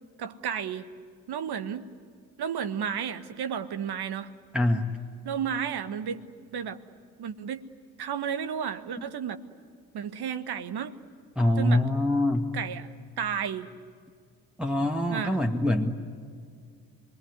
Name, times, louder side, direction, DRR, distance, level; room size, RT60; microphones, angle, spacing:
voice 1, 0.2-0.9 1.3-1.8 2.4-4.3 5.2-6.2 6.5-6.8 7.2-7.7 8.0-9.4 9.9-10.9 11.6-11.9 12.5-12.9 13.2-13.7 15.1-15.4, right 8 dB, 50° right, 9 dB, 1.5 m, -32 dB
voice 2, 4.5-4.9 11.4-12.5 14.6-16.1, left 1 dB, ahead, 0 dB, 1.9 m, -24 dB
27.0 x 22.0 x 9.6 m, 2.2 s
figure-of-eight pair, 40°, 48 cm